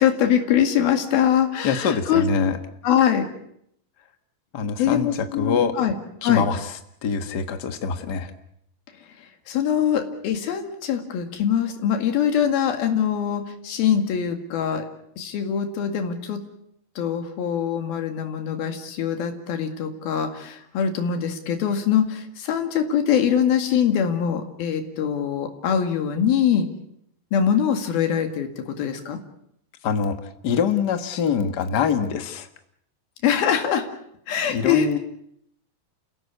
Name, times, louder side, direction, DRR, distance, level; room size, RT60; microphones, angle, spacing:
voice 1, 0.0-2.3 2.8-3.3 4.8-6.0 6.2-6.5 9.5-14.9 15.2-16.4 17.0-26.7 27.3-29.2 33.2-33.9 34.3-34.9, left 8 dB, 80° left, 6 dB, 3.9 m, -23 dB
voice 2, 1.6-2.6 4.5-5.7 6.2-8.3 29.8-30.2 30.4-32.5 34.5-35.0, left 6 dB, 60° left, 8 dB, 1.0 m, -24 dB
29.0 x 16.5 x 8.4 m, 0.74 s
omnidirectional pair, 4.3 m